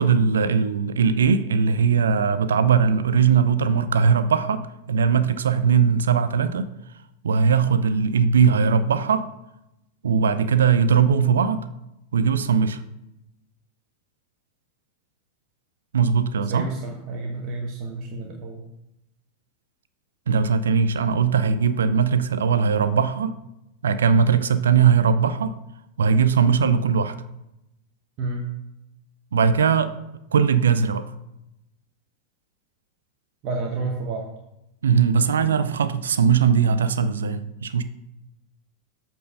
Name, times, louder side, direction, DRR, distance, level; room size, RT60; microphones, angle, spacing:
voice 1, 0.0-6.7 7.2-9.3 10.0-11.7 12.1-12.8 15.9-16.7 20.3-23.3 23.8-25.6 26.0-27.2 29.3-29.9 30.3-31.0 34.8-37.8, right 6 dB, 65° right, 12 dB, 0.5 m, -20 dB
voice 2, 16.5-18.7 28.2-28.5 33.4-34.3, right 3 dB, 40° right, 1 dB, 1.1 m, -30 dB
8.3 x 4.5 x 5.4 m, 0.88 s
figure-of-eight pair, 90°, 0 cm